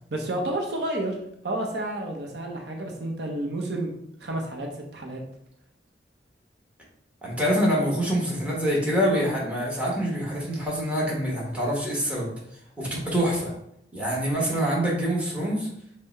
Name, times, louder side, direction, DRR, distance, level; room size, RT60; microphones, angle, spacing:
voice 1, 0.1-1.2 1.4-3.9 4.2-5.2, right 1 dB, 70° right, 2 dB, 0.7 m, -30 dB
voice 2, 7.2-12.3 12.8-13.5 13.9-15.7, equal, 10° right, -5 dB, 1.2 m, -25 dB
5.6 x 2.1 x 4.0 m, 0.74 s
head